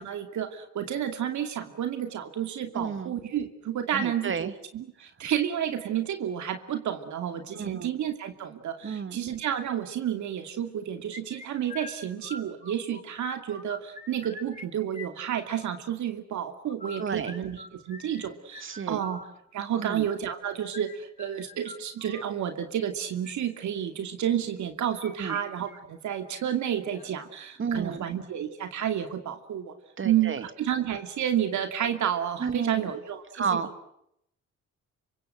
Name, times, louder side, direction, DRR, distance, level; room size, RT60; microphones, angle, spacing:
voice 1, 0.0-19.2 19.5-29.7 30.0-33.7, right 10 dB, 70° right, 6 dB, 2.6 m, -31 dB
voice 2, 2.7-3.1 3.9-4.5 7.5-7.9 8.8-9.2 17.0-17.4 18.6-19.0 19.8-20.1 25.2-25.4 27.6-28.1 30.0-30.4 32.4-32.8 33.3-33.7, right 6 dB, 40° right, 10 dB, 2.6 m, -31 dB
sound 1, 11.1-13.0 13.3-14.7 14.9-15.9 16.6-22.3 23.0-23.3 24.6-25.4 25.7-25.8 26.2-26.3 26.9-27.3, left 3 dB, 25° left, 7.7 m, -45 dB
28.5 x 24.5 x 7.7 m, 0.77 s
cardioid pair, 90°, 30 cm